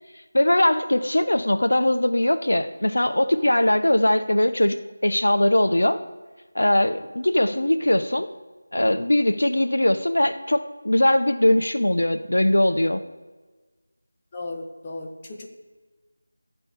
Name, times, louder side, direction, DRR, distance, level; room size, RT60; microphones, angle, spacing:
voice 1, 0.3-4.8 5.0-6.0 6.5-8.3 8.7-13.0, left 1 dB, 90° left, 9 dB, 0.8 m, -20 dB
voice 2, 14.3-15.5, left 2 dB, 20° left, 0 dB, 1.1 m, -35 dB
13.5 x 4.4 x 8.1 m, 1.3 s
figure-of-eight pair, 170°, 0 cm